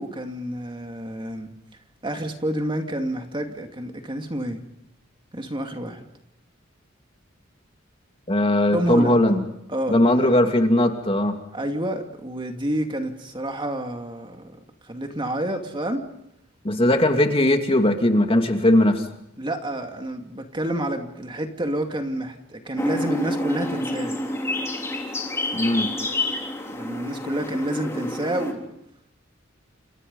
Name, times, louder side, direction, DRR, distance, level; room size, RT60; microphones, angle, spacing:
voice 1, 0.0-1.5 2.0-4.6 5.3-6.1 8.7-9.2 9.7-10.4 11.5-14.5 14.8-16.0 19.4-24.2 26.7-28.7, right 1 dB, 25° right, 4 dB, 2.5 m, -29 dB
voice 2, 8.3-9.4 9.9-11.4 16.6-19.0 25.5-25.9, left 1 dB, 30° left, 4 dB, 2.6 m, -19 dB
sound 1, 22.8-28.5, left 1 dB, 15° left, 3.7 m, -28 dB
29.5 x 28.0 x 5.5 m, 0.80 s
head